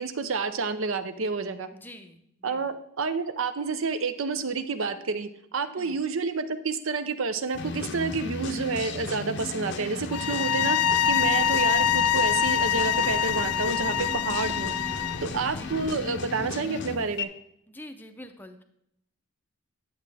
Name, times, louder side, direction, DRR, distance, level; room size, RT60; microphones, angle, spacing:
voice 1, 0.0-1.7 2.4-14.7 15.2-17.3, right 4 dB, 60° right, 11 dB, 0.6 m, -29 dB
voice 2, 1.7-2.7 5.8-6.0 15.5-15.8 17.7-18.6, left 1 dB, 10° left, 7 dB, 0.6 m, -46 dB
sound 1, 7.5-17.2, left 3 dB, 55° left, 0.6 m, -35 dB
sound 2, 10.1-15.3, left 9 dB, 90° left, 0.4 m, -25 dB
sound 3, 11.0-16.0, equal, 25° right, 1.5 m, -47 dB
10.5 x 7.2 x 3.4 m, 0.76 s
head